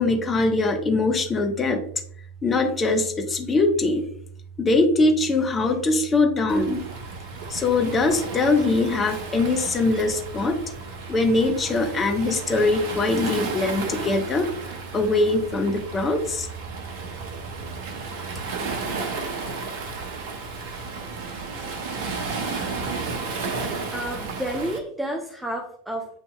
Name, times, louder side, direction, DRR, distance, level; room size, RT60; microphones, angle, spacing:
voice 1, 0.0-1.8 2.4-4.0 4.6-6.8 7.5-10.6 11.1-14.5 14.9-16.5, left 2 dB, 20° left, 3 dB, 0.8 m, -22 dB
Waves surf, 6.5-24.8, right 4 dB, 50° right, 0.7 m, -33 dB
voice 2, 23.9-26.1, right 1 dB, 5° right, 2 dB, 0.5 m, -30 dB
8.2 x 2.8 x 2.2 m, 0.64 s
figure-of-eight pair, 90°, 0 cm